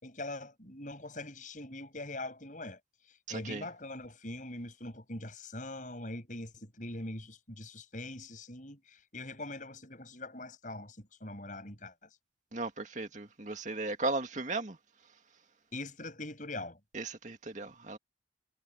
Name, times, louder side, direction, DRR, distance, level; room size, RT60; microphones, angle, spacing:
voice 1, 0.0-2.8 3.3-12.1 15.7-16.8, left 2 dB, 45° left, 7.3 m, -42 dB
voice 2, 3.3-3.6 12.5-14.8 16.9-18.0, right 2 dB, 45° right, 2.2 m, -36 dB
head